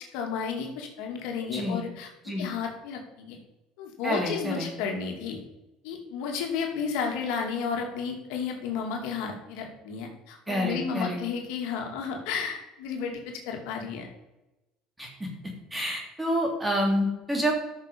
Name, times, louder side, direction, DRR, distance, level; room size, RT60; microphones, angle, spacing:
voice 1, 0.1-2.1 2.4-3.4 3.8-5.4 5.8-14.1, left 6 dB, 75° left, 2 dB, 2.4 m, -32 dB
voice 2, 4.0-4.7 10.5-11.2 15.0-15.3 15.7-17.5, equal, 10° right, 0 dB, 3.3 m, -28 dB
13.5 x 6.5 x 5.3 m, 0.99 s
cardioid pair, 130°, 0 cm